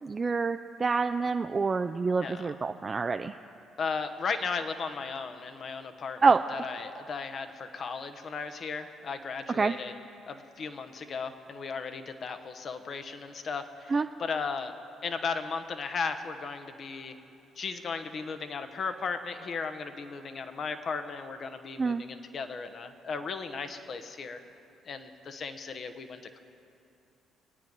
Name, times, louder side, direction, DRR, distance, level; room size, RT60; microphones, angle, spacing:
voice 1, 0.0-3.3 6.2-6.4 9.5-9.8 13.9-14.1 21.8-22.0, right 4 dB, 35° right, 8 dB, 0.4 m, -26 dB
voice 2, 2.2-2.5 3.8-9.9 10.3-14.7 15.0-17.1 17.6-24.4 24.9-26.4, left 5 dB, 50° left, 8 dB, 1.0 m, -36 dB
22.0 x 9.2 x 5.3 m, 2.8 s
hypercardioid pair, 50°, 0 cm